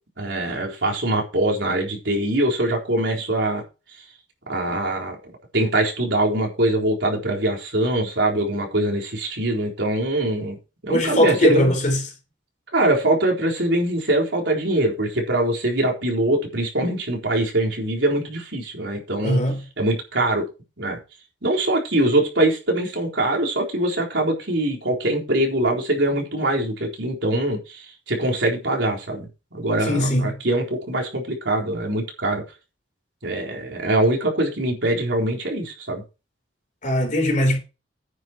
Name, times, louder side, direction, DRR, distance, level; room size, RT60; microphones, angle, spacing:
voice 1, 0.2-3.6 4.5-10.6 10.8-11.7 12.7-19.4 19.8-20.5 20.8-21.0 21.4-32.4 33.2-36.0, right 1 dB, 70° right, 4.0 m, -23 dB
voice 2, 10.9-12.0 19.2-19.7 29.8-30.4 36.8-37.6, left 1 dB, 40° left, 4.4 m, -20 dB
9.8 x 8.0 x 4.4 m
head